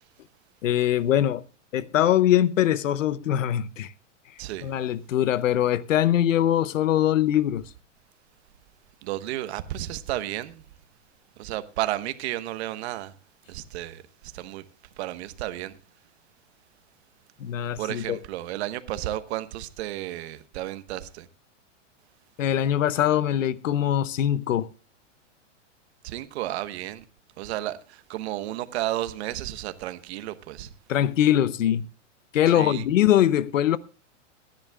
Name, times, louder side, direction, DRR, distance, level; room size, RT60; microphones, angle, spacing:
voice 1, 0.6-1.4 1.7-3.9 4.6-7.7 17.4-18.2 22.4-24.7 30.9-31.9 32.3-33.8, left 11 dB, 90° left, 0.8 m, -22 dB
voice 2, 4.4-4.7 9.0-10.6 11.4-13.1 13.5-14.6 15.0-15.8 17.8-21.3 26.0-27.0 27.4-30.7 32.5-32.9, right 14 dB, 55° right, 1.1 m, -32 dB
22.0 x 10.5 x 2.3 m
hypercardioid pair, 140°, 37 cm